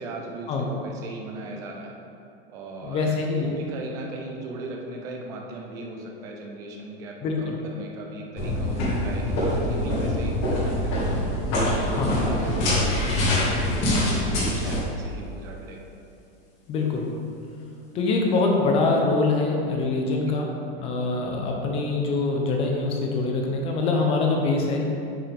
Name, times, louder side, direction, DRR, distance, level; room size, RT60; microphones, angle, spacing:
voice 1, 0.0-1.9 2.5-11.1 11.5-15.9 20.3-20.5 20.8-21.0, right 2 dB, 10° right, 0 dB, 0.3 m, -38 dB
voice 2, 2.8-3.5 7.2-7.6 11.9-12.1 16.7-17.1 17.9-20.5 20.8-24.8, left 3 dB, 20° left, 1 dB, 0.8 m, -24 dB
sound 1, 8.4-14.8, left 1 dB, 35° left, 1.9 m, -24 dB
7.5 x 7.3 x 3.5 m, 2.7 s
supercardioid pair, 170°, 30 cm